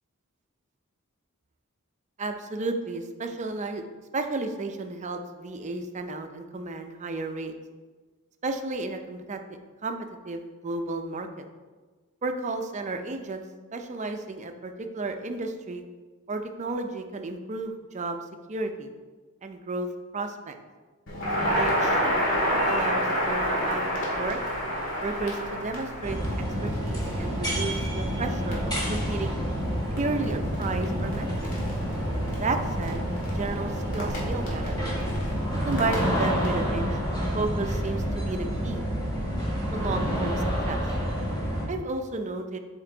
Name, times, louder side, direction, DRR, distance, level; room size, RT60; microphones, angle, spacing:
voice 1, 2.2-3.8 4.1-7.5 8.4-9.4 9.8-10.0 10.3-11.4 12.2-13.4 13.7-15.8 16.3-18.2 18.5-18.9 19.4-19.9 20.1-20.5 21.4-22.0 22.7-24.4 25.0-26.2 26.6-29.3 30.0-31.5 32.3-33.1 33.3-34.8 35.7-36.8 37.3-38.8 39.7-40.8 41.7-42.6, right 3 dB, 35° right, 6 dB, 0.5 m, -32 dB
Crackle, 21.1-36.5, equal, 65° left, 1.9 m, -30 dB
sound 1, 26.0-41.7, equal, 20° left, 1.7 m, -28 dB
7.8 x 4.4 x 3.8 m, 1.3 s
head